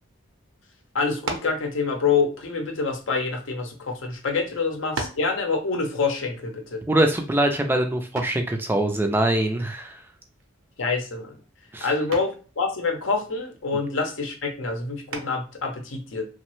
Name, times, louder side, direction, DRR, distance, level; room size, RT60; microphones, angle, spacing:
voice 1, 0.9-6.8 10.8-11.4 11.8-16.3, left 4 dB, 70° left, 3 dB, 0.7 m, -26 dB
sound 1, 1.2-1.6 2.6-3.7 4.4-4.5 4.9-5.3 8.1-8.5 10.4-10.8 11.1-11.5 12.1-12.4 15.1-15.6, right 3 dB, 80° right, 0.6 m, -35 dB
voice 2, 6.9-10.0 11.7-11.9, right 1 dB, 10° right, 5 dB, 0.3 m, -23 dB
3.0 x 2.0 x 3.0 m, 0.36 s
head